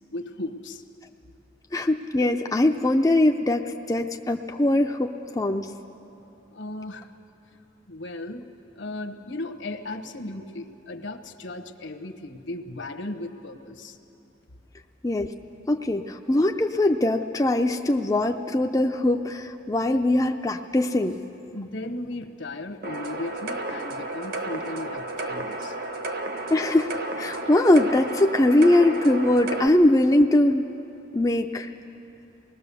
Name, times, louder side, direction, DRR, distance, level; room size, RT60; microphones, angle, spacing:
voice 1, 0.1-0.8 6.5-7.1 7.9-8.4 8.7-14.0 21.5-25.8, left 2 dB, 65° left, 7 dB, 1.1 m, -36 dB
voice 2, 1.7-5.7 15.0-15.3 15.7-21.2 26.5-30.6 31.1-31.7, left 1 dB, 20° left, 4 dB, 0.5 m, -21 dB
sound 1, 22.8-29.7, right 2 dB, 50° right, 1.2 m, -32 dB
25.0 x 19.5 x 7.0 m, 2.8 s
head